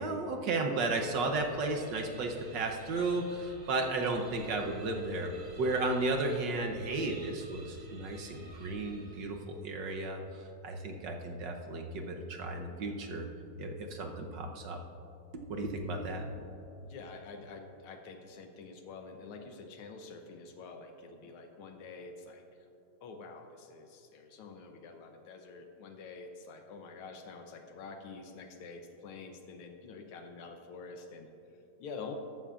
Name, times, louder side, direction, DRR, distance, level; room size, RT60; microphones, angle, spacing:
voice 1, 0.0-5.3 5.6-10.2 10.6-13.3 13.6-14.8 15.5-16.3, right 2 dB, 65° right, 3 dB, 1.4 m, -34 dB
sound 1, 0.9-9.6, right 1 dB, 35° right, 1.3 m, -52 dB
voice 2, 16.8-22.4 23.0-31.3 31.8-32.1, left 4 dB, 80° left, 4 dB, 1.7 m, -47 dB
14.0 x 12.5 x 2.4 m, 2.9 s
omnidirectional pair, 2.4 m